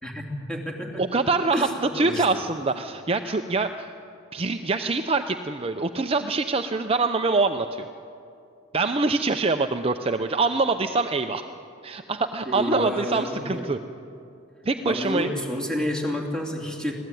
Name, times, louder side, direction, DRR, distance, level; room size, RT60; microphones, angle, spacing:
voice 1, 0.0-1.0 1.5-2.4 12.4-13.7 14.8-16.9, left 1 dB, 5° left, -1 dB, 3.1 m, -30 dB
voice 2, 1.0-1.7 1.9-3.9 4.3-7.9 8.7-11.4 11.8-13.8 14.6-15.3, right 3 dB, 30° right, 6 dB, 0.6 m, -24 dB
25.0 x 17.0 x 9.2 m, 2.6 s
head